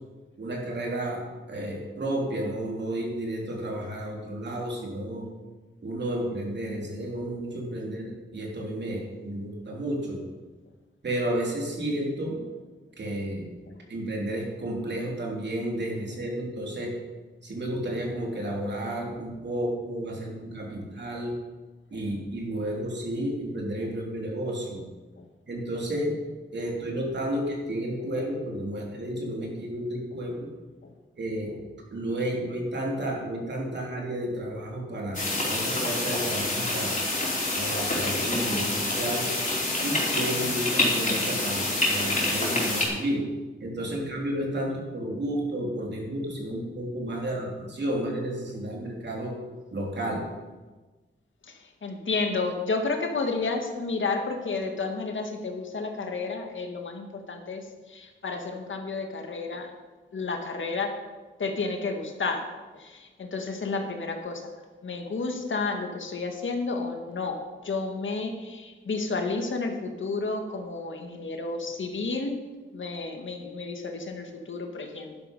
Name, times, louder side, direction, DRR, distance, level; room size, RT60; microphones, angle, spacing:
voice 1, 0.4-5.3 5.8-10.2 11.0-12.4 13.0-13.5 13.9-16.9 17.4-21.3 21.9-24.9 25.5-26.2 26.5-30.5 31.2-31.5 31.9-37.0 37.6-39.3 39.8-43.2 43.6-49.3 49.7-50.2, right 1 dB, 55° right, -1 dB, 3.3 m, -32 dB
sound 1, 35.1-42.9, left 2 dB, 35° left, 4.4 m, -27 dB
voice 2, 51.4-59.7 60.1-60.9 61.4-62.5 62.7-64.5 64.8-72.4 72.7-75.2, left 3 dB, 70° left, 4 dB, 1.8 m, -31 dB
11.5 x 11.0 x 5.4 m, 1.3 s
wide cardioid pair, 115°, 21 cm